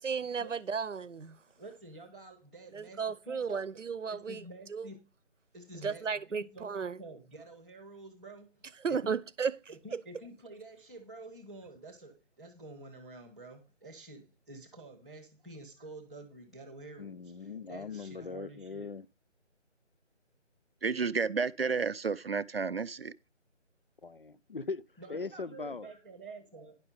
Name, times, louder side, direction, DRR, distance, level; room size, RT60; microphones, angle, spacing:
voice 1, 0.0-1.4 2.7-4.4 4.7-4.9 5.8-7.0 8.8-9.6 9.9-10.0, right 6 dB, 80° right, 0.9 m, -34 dB
voice 2, 1.6-3.6 4.1-5.0 5.5-9.2 9.7-17.3 17.7-18.9 25.0-26.8, right 2 dB, ahead, 0.6 m, -49 dB
voice 3, 17.0-19.1 24.0-24.8 25.1-25.9, left 4 dB, 45° left, 0.5 m, -40 dB
voice 4, 20.8-23.1, right 5 dB, 55° right, 0.5 m, -31 dB
10.5 x 5.9 x 5.0 m
figure-of-eight pair, 165°, 37 cm